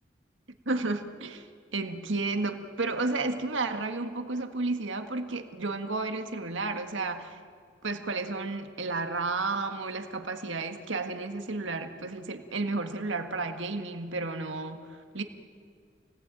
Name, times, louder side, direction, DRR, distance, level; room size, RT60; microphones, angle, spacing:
voice 1, 0.7-7.4 7.8-15.2, right 3 dB, 80° right, 6 dB, 1.7 m, -32 dB
28.0 x 19.5 x 9.0 m, 2.2 s
head